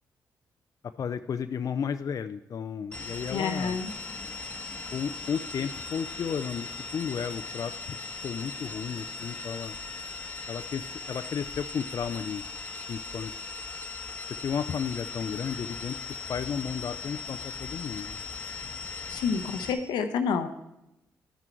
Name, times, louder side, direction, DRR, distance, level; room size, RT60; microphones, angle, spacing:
voice 1, 0.8-3.8 4.9-8.0 8.2-9.7 10.5-12.4 12.9-13.3 14.4-18.2, left 7 dB, 55° left, 9 dB, 0.5 m, -33 dB
sound 1, 2.9-19.7, left 4 dB, 15° left, 1.2 m, -39 dB
voice 2, 3.3-3.9 19.1-20.5, left 6 dB, 90° left, 7 dB, 0.8 m, -28 dB
12.0 x 6.1 x 4.5 m, 0.89 s
cardioid pair, 70°, 7 cm